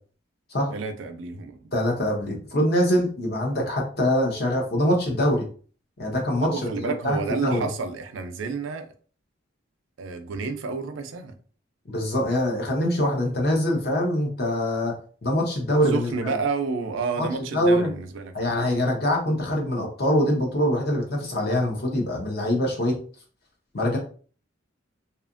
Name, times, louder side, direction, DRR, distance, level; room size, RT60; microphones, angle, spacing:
voice 1, 0.7-1.7 6.4-8.9 10.0-11.3 15.9-18.6, right 4 dB, 75° right, 8 dB, 0.4 m, -30 dB
voice 2, 1.7-5.5 6.0-7.7 11.9-16.4 17.2-17.3 17.5-17.9 18.3-22.9 23.7-24.0, equal, 50° left, 1 dB, 0.8 m, -24 dB
2.7 x 2.4 x 2.5 m, 0.41 s
head